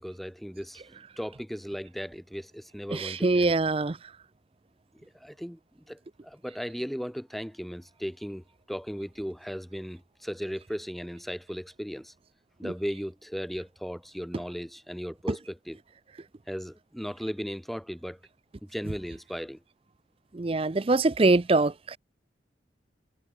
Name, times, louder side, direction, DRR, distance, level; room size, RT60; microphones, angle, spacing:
voice 1, 0.0-3.6 4.9-5.6 5.9-12.1 12.6-15.8 16.5-18.2 18.6-19.6, equal, ahead, 2.6 m, -37 dB
voice 2, 2.9-4.0 20.3-22.0, right 3 dB, 30° right, 0.5 m, -23 dB
head